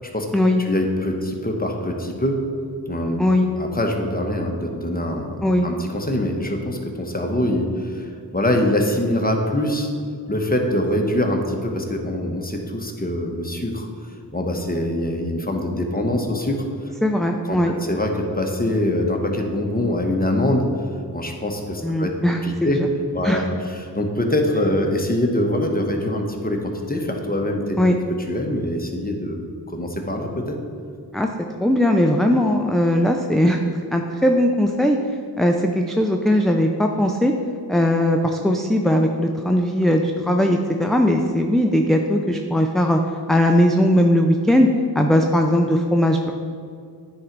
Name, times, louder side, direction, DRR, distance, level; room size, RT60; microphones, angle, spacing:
voice 1, 0.6-2.4 2.9-3.2 3.6-9.9 10.3-13.9 14.3-16.6 17.5-20.7 21.1-22.1 22.4-22.8 23.1-23.5 23.7-27.8 28.3-29.4 29.7-30.6, left 1 dB, 20° left, 2 dB, 1.0 m, -24 dB
voice 2, 17.0-17.7 21.8-22.9 23.2-23.5 27.8-28.0 31.1-31.3 31.6-35.0 35.4-37.3 37.7-43.0 43.3-44.7 45.0-46.3, left 1 dB, ahead, 2 dB, 0.4 m, -19 dB
9.5 x 3.9 x 4.6 m, 2.2 s
cardioid pair, 45°, 42 cm